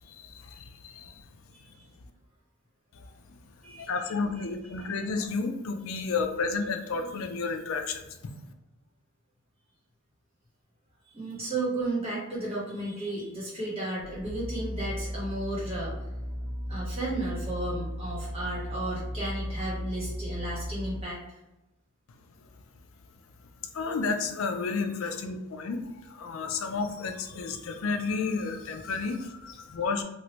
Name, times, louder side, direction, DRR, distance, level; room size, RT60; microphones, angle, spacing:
voice 1, 0.0-1.3 2.9-8.3 22.1-22.5 23.7-30.0, left 4 dB, 70° left, 5 dB, 0.4 m, -32 dB
voice 2, 1.5-1.9 3.6-3.9 4.4-4.5 11.1-15.9 16.7-21.4, right 2 dB, 25° right, -7 dB, 1.3 m, -34 dB
sound 1, 14.0-21.0, equal, 10° left, 0.7 m, -36 dB
3.1 x 2.5 x 3.0 m, 0.95 s
head